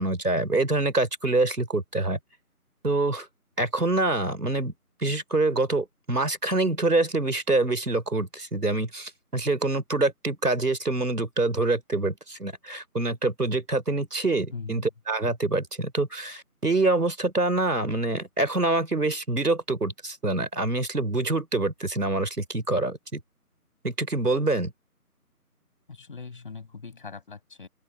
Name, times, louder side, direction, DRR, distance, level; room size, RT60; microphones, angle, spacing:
voice 1, 0.0-2.2 2.8-3.3 3.6-4.7 5.0-23.2 23.8-24.7, right 2 dB, 80° right, 4.0 m, -26 dB
voice 2, 14.5-14.9 25.9-27.7, left 5 dB, 35° left, 6.3 m, -40 dB
open air
figure-of-eight pair, 165°, 46 cm